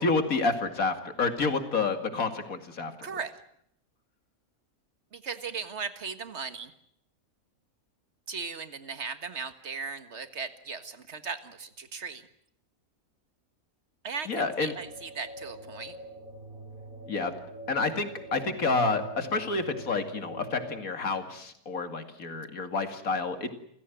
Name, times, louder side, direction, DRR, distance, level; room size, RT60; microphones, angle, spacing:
voice 1, 0.0-3.1 14.3-14.7 17.1-17.3 17.7-23.5, left 3 dB, 75° left, 8 dB, 2.8 m, -29 dB
voice 2, 3.0-3.3 5.1-6.7 8.3-12.2 14.0-16.0, right 5 dB, 50° right, 11 dB, 1.9 m, -37 dB
sound 1, 14.7-20.8, equal, 75° right, 6.5 m, -44 dB
28.5 x 16.0 x 9.2 m, 0.72 s
omnidirectional pair, 1.5 m